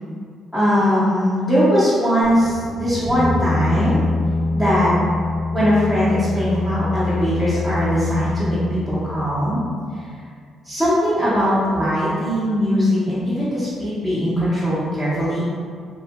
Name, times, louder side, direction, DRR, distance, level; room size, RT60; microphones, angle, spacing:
voice 1, 0.5-4.0 4.5-4.9 5.5-9.6 10.6-15.4, equal, 5° left, -14 dB, 0.9 m, -20 dB
sound 1, 2.2-9.6, left 3 dB, 60° left, 0.9 m, -25 dB
2.7 x 2.5 x 2.4 m, 2.1 s
cardioid pair, 90°, 0 cm